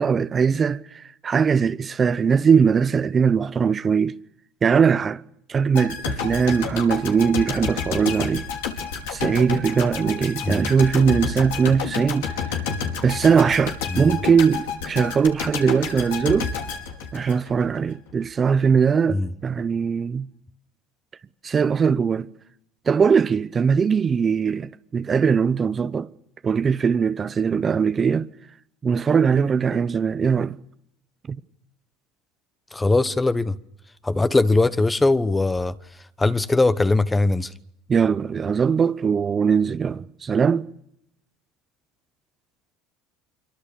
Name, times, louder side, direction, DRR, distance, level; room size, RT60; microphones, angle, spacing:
voice 1, 0.0-4.2 4.6-5.2 5.5-8.4 9.1-12.6 13.0-16.5 17.1-20.3 21.4-22.3 22.9-26.1 26.4-28.3 28.8-30.6 31.3-31.4 37.9-40.7, right 6 dB, 30° right, 0.8 m, -20 dB
sound 1, 5.7-17.8 18.1-18.2, left 6 dB, 90° left, 4.9 m, -30 dB
voice 2, 32.7-33.6 34.0-35.7 36.2-37.5, left 2 dB, 10° left, 1.1 m, -20 dB
25.5 x 23.5 x 7.0 m
supercardioid pair, 110°, 0 cm